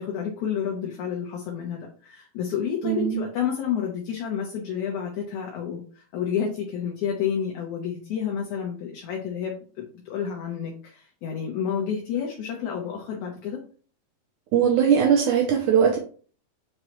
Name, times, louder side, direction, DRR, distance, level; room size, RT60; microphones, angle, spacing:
voice 1, 0.0-13.6, left 8 dB, 65° left, 0 dB, 2.0 m, -30 dB
voice 2, 2.8-3.2 14.5-16.0, right 8 dB, 80° right, 4 dB, 1.7 m, -20 dB
7.8 x 4.7 x 3.1 m, 0.42 s
omnidirectional pair, 4.5 m